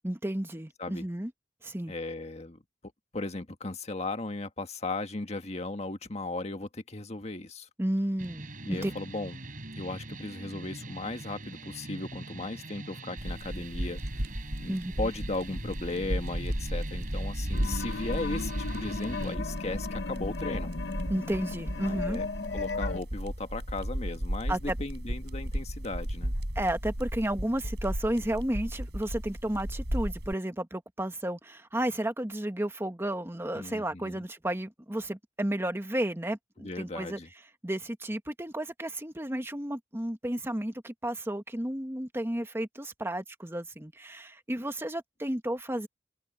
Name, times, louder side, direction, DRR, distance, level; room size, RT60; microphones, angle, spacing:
voice 1, 0.0-1.3 1.6-1.9 7.8-8.9 14.7-15.1 21.1-22.2 24.5-24.8 26.5-37.2 37.6-45.9, right 1 dB, 15° right, 1.3 m, -32 dB
voice 2, 1.9-2.6 3.1-7.7 8.6-9.4 9.8-14.0 14.6-20.7 21.8-22.3 22.5-26.3 33.6-34.2 36.6-37.3, left 2 dB, 40° left, 1.7 m, -36 dB
sound 1, 8.2-19.3, right 2 dB, 50° right, 4.8 m, -43 dB
sound 2, 13.2-30.3, equal, 70° right, 5.4 m, -34 dB
sound 3, 17.5-23.0, left 4 dB, 70° left, 0.9 m, -36 dB
head